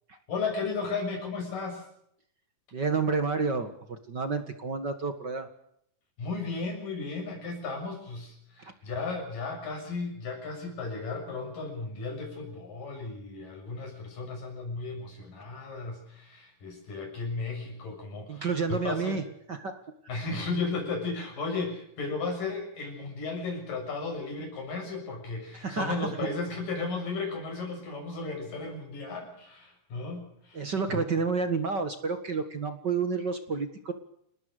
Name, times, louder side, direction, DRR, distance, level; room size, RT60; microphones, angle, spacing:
voice 1, 0.3-1.8 6.2-19.2 20.1-31.0, left 3 dB, 90° left, 2 dB, 8.5 m, -35 dB
voice 2, 2.7-5.5 18.3-19.2 19.5-19.8 25.6-26.0 30.5-33.9, right 4 dB, 40° right, 8 dB, 1.9 m, -30 dB
28.0 x 19.0 x 6.8 m, 0.72 s
omnidirectional pair, 3.8 m